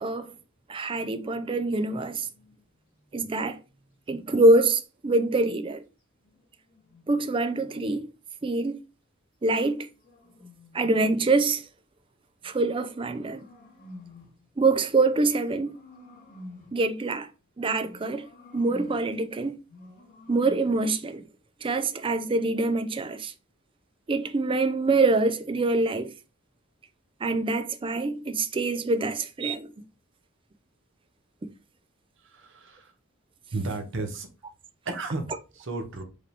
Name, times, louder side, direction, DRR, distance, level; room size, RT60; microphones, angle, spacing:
voice 1, 0.0-0.3 0.7-2.3 3.1-3.6 4.1-5.8 7.1-8.1 8.4-8.8 9.4-9.9 10.7-11.6 12.4-13.4 14.6-15.8 16.7-17.3 17.6-18.3 18.5-19.6 20.3-21.2 21.6-23.3 24.1-26.1 27.2-29.7 31.4-31.5, right 2 dB, 25° right, 0.4 m, -25 dB
sound 1, 2.2-4.6 6.2-8.0 9.4-11.4 12.4-14.4 15.1-16.9 17.8-19.2 19.6-20.9, left 1 dB, 45° left, 2.0 m, -51 dB
voice 2, 32.2-32.9 33.5-34.3 34.8-36.0, right 3 dB, 65° right, 1.0 m, -33 dB
5.0 x 2.9 x 3.3 m
head